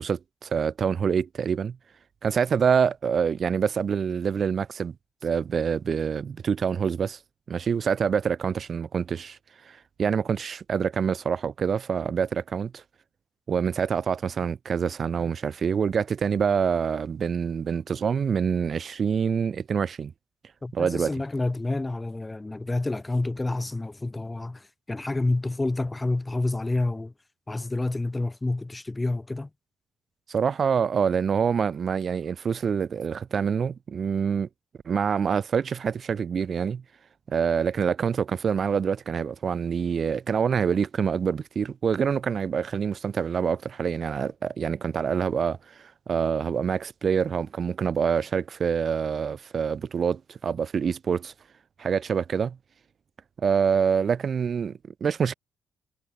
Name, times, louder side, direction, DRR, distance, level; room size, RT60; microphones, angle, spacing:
voice 1, 0.0-1.8 2.2-4.9 5.2-7.2 7.5-9.4 9.6-12.8 13.5-20.1 20.7-21.1 30.3-34.5 34.9-36.8 37.3-51.3 51.8-52.6 53.4-55.3, right 6 dB, 50° right, 0.8 m, -26 dB
voice 2, 20.6-27.1 27.5-29.5, left 2 dB, 15° left, 1.6 m, -28 dB
cardioid pair, 90°, 0 cm